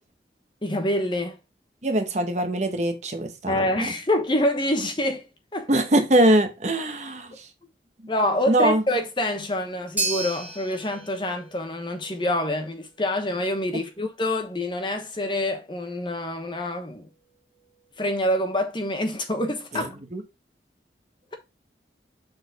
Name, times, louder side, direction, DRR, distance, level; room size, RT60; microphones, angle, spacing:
voice 1, 0.6-1.4 3.5-5.7 8.1-17.1 18.0-19.9, left 1 dB, 25° left, 1.2 m, -26 dB
voice 2, 1.8-3.9 5.7-7.5 8.5-8.8 19.7-20.2, right 1 dB, 40° right, 1.0 m, -22 dB
sound 1, 10.0-18.3, right 2 dB, 10° right, 1.7 m, -37 dB
7.0 x 4.3 x 4.0 m
head